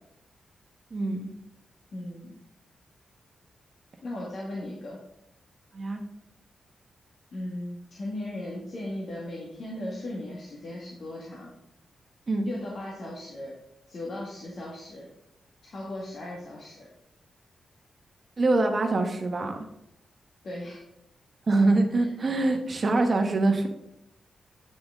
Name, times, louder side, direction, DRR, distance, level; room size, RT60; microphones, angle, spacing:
voice 1, 0.9-1.3 5.7-6.0 12.3-12.5 18.4-19.6 21.5-23.7, right 2 dB, 35° right, 4 dB, 1.2 m, -24 dB
voice 2, 1.9-2.3 4.0-5.0 7.3-11.5 12.4-13.5 13.9-15.1 15.6-16.9 20.4-20.8 22.0-22.1, left 1 dB, 55° left, -4 dB, 1.8 m, -37 dB
9.7 x 6.0 x 3.7 m, 0.80 s
wide cardioid pair, 135°, 0 cm